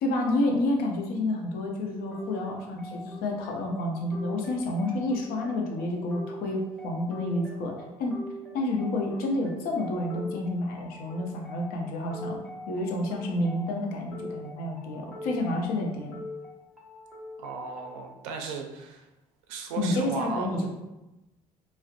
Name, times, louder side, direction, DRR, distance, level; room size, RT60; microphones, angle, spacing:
voice 1, 0.0-8.2 8.5-12.4 12.7-16.2 19.8-20.7, left 1 dB, 75° left, 1 dB, 0.5 m, -29 dB
sound 1, 2.1-18.1, left 1 dB, 5° right, 0.9 m, -43 dB
voice 2, 17.4-19.1 19.5-20.5, right 5 dB, 85° right, 3 dB, 0.4 m, -36 dB
2.5 x 2.0 x 2.4 m, 0.98 s
supercardioid pair, 70°, 16 cm